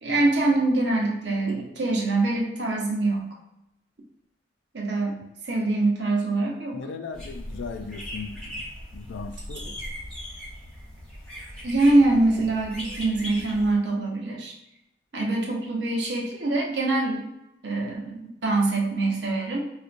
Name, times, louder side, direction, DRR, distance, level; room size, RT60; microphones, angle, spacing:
voice 1, 0.0-3.3 4.7-5.2 5.4-6.8 11.6-14.5 15.1-17.3 17.6-19.6, right 2 dB, 65° right, -2 dB, 0.9 m, -24 dB
voice 2, 6.7-8.7 8.9-9.7, left 4 dB, 85° left, 7 dB, 0.3 m, -37 dB
sound 1, 7.1-13.8, equal, 5° left, 1.0 m, -39 dB
4.2 x 2.4 x 2.5 m, 0.85 s
head